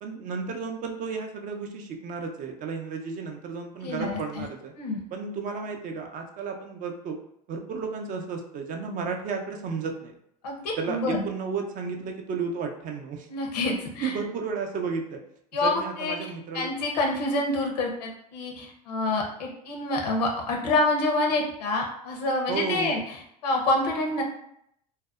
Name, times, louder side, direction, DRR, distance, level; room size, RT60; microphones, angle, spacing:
voice 1, 0.0-4.7 5.1-7.2 7.5-10.1 10.8-13.3 14.0-15.2 15.6-16.7 22.5-23.0, right 5 dB, 40° right, 3 dB, 0.5 m, -33 dB
voice 2, 3.8-4.4 4.8-5.0 10.4-11.2 13.3-14.2 15.5-16.1 16.5-23.0 23.4-24.2, left 2 dB, 80° left, 1 dB, 0.7 m, -27 dB
2.6 x 2.1 x 2.3 m, 0.73 s
hypercardioid pair, 90°, 21 cm